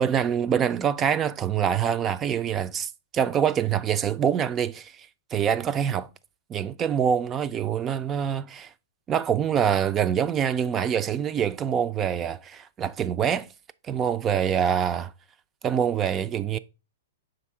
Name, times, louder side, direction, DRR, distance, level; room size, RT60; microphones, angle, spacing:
voice 1, 0.0-6.1 6.5-8.7 9.1-13.5 13.8-15.1 15.6-16.6, right 8 dB, 25° right, 0.3 m, -25 dB
5.7 x 3.9 x 4.2 m
hypercardioid pair, 120°, 0 cm